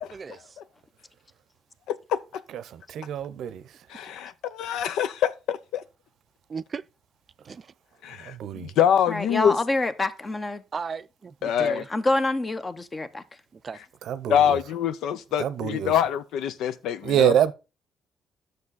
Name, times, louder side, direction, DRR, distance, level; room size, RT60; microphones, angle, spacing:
voice 1, 0.1-0.5 6.5-6.8 7.4-7.7 10.7-11.9 13.6-13.8, right 5 dB, 40° right, 0.4 m, -36 dB
voice 2, 1.9-2.2 3.9-5.8 8.0-9.6 11.4-11.8 14.3-17.3, left 9 dB, 85° left, 0.6 m, -25 dB
voice 3, 2.9-3.6 8.3-8.7 14.1-14.6 15.4-15.9 17.0-17.5, right 9 dB, 75° right, 0.6 m, -25 dB
voice 4, 9.1-10.6 11.9-13.2, left 2 dB, 25° left, 0.9 m, -26 dB
9.7 x 6.5 x 4.0 m
cardioid pair, 90°, 0 cm